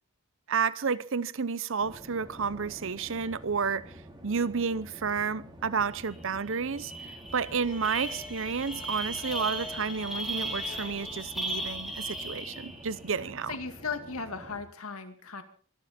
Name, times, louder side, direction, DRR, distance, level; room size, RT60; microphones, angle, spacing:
voice 1, 0.5-3.9 4.2-6.9 7.3-13.5, right 5 dB, 60° right, 0.7 m, -31 dB
sound 1, 1.8-14.6, right 1 dB, 20° right, 3.5 m, -49 dB
sound 2, 6.1-6.2 6.5-12.9, right 1 dB, ahead, 2.3 m, -37 dB
sound 3, 7.3-12.3, left 6 dB, 40° left, 1.6 m, -48 dB
voice 2, 13.2-15.4, left 4 dB, 80° left, 2.2 m, -37 dB
24.5 x 11.5 x 4.3 m
head